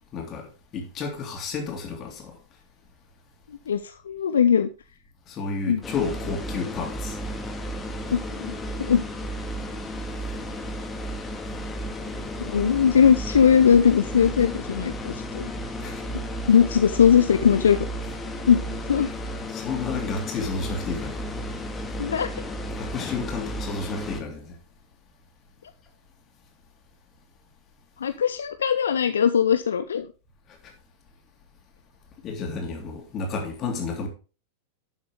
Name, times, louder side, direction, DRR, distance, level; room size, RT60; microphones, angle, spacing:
voice 1, 0.1-2.4 5.3-7.2 15.8-16.0 19.5-21.2 22.8-24.6 32.2-34.1, left 4 dB, 30° left, 3.4 m, -31 dB
voice 2, 3.7-4.7 5.7-5.8 8.1-8.5 8.8-9.0 12.4-15.5 16.5-17.9 18.5-19.1 22.0-22.3 28.0-30.1, left 7 dB, 65° left, 0.6 m, -20 dB
sound 1, 5.8-24.2, equal, 15° left, 1.8 m, -33 dB
12.0 x 7.3 x 3.6 m
figure-of-eight pair, 90°, 0 cm